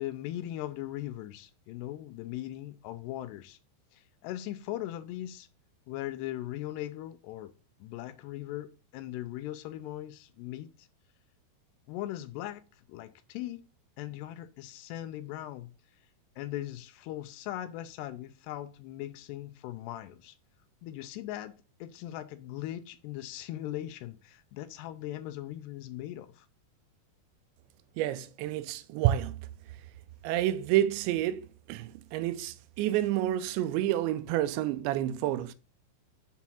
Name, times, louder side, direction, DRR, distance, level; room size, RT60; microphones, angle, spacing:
voice 1, 0.0-3.6 3.9-5.5 5.9-7.5 7.8-10.9 11.9-12.6 12.9-13.6 14.0-15.7 16.4-20.4 20.8-21.5 21.8-26.5, left 14 dB, 80° left, 2.6 m, -39 dB
voice 2, 28.0-29.4 30.2-35.5, right 13 dB, 85° right, 2.9 m, -29 dB
7.1 x 4.5 x 5.5 m
omnidirectional pair, 5.0 m